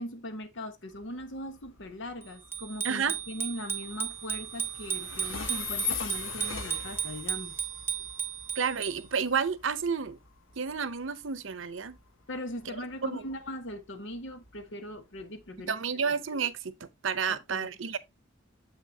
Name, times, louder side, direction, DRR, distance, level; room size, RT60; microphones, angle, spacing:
voice 1, 0.0-7.6 12.3-16.1 17.3-17.7, left 1 dB, 70° left, 1.1 m, -40 dB
Train, 0.9-15.6, left 6 dB, 90° left, 1.2 m, -42 dB
Bicycle bell, 2.5-9.2, right 8 dB, 10° right, 0.8 m, -35 dB
voice 2, 2.8-3.2 8.5-10.2 10.6-12.0 13.0-13.2 15.7-18.0, right 6 dB, 70° right, 0.8 m, -30 dB
7.5 x 6.4 x 2.7 m
head